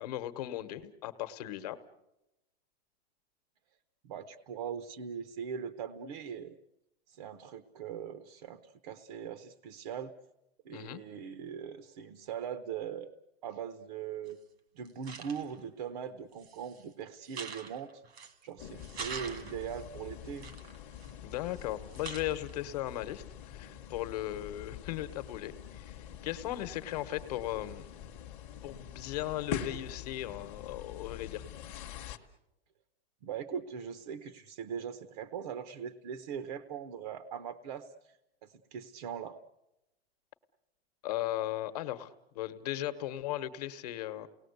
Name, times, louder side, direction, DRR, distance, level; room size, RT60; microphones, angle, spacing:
voice 1, 0.0-1.8 10.7-11.0 21.2-26.0 26.2-27.9 28.6-31.4 41.0-44.3, left 13 dB, 40° left, 10 dB, 1.2 m, -37 dB
voice 2, 4.0-6.6 7.1-10.1 10.6-13.2 13.4-14.4 14.7-18.0 18.4-20.5 33.2-38.1 38.4-39.4, right 7 dB, 40° right, 11 dB, 0.9 m, -41 dB
sound 1, 14.3-14.4 14.9-15.6 16.3-16.8 17.2-18.4 18.8-19.8 20.4-21.6 21.9-22.5, right 6 dB, 85° right, 2.5 m, -44 dB
sound 2, 18.6-32.2, left 8 dB, 20° left, 1.0 m, -45 dB
29.0 x 19.0 x 8.1 m, 0.92 s
supercardioid pair, 175°, 31 cm